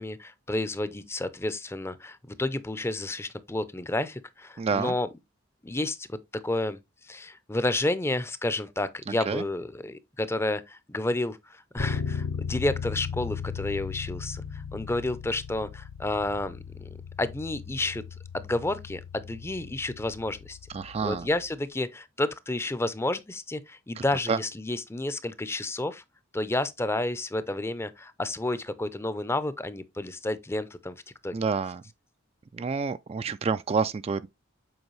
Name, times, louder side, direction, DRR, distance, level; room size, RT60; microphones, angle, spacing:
voice 1, 0.0-5.1 5.6-6.8 7.1-16.9 17.2-18.0 18.3-20.6 21.0-26.0 26.3-31.0 31.2-31.3, left 2 dB, 15° left, 0.6 m, -30 dB
voice 2, 4.6-4.9 9.1-9.4 20.7-21.3 24.0-24.1 24.3-24.4 31.3-31.8 32.5-34.3, right 5 dB, 30° right, 0.3 m, -28 dB
Bass guitar, 11.8-21.6, left 6 dB, 80° left, 1.0 m, -37 dB
7.9 x 4.6 x 3.1 m
head